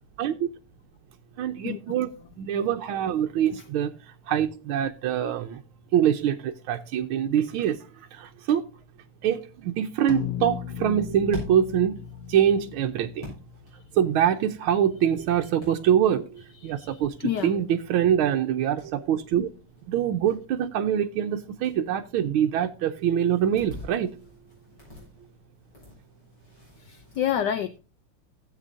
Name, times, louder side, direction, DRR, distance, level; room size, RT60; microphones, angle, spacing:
voice 1, 1.4-2.1 2.4-3.9 4.3-5.6 5.9-8.6 9.2-12.0 12.3-13.3 13.9-19.5 19.9-24.1, right 9 dB, 75° right, 1.5 m, -24 dB
sound 1, 10.1-14.7, left 11 dB, 90° left, 1.6 m, -37 dB
sound 2, 10.9-27.3, left 2 dB, 50° left, 7.3 m, -48 dB
voice 2, 16.6-17.6 26.8-27.8, left 10 dB, 70° left, 1.0 m, -29 dB
15.5 x 8.2 x 2.6 m
omnidirectional pair, 2.4 m